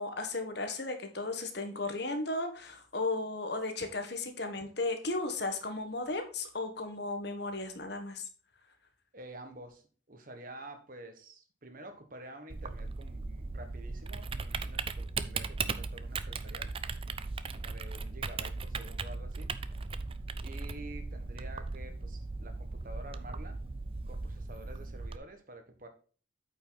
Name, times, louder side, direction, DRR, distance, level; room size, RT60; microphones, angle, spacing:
voice 1, 0.0-8.2, left 2 dB, 55° left, 6 dB, 1.4 m, -35 dB
voice 2, 9.1-9.8 10.1-16.7 17.5-19.5 20.4-23.6 24.1-25.9, right 1 dB, 45° right, 6 dB, 1.3 m, -49 dB
Typing, 12.5-25.2, right 4 dB, 30° right, 0.4 m, -38 dB
8.6 x 5.4 x 4.0 m, 0.39 s
head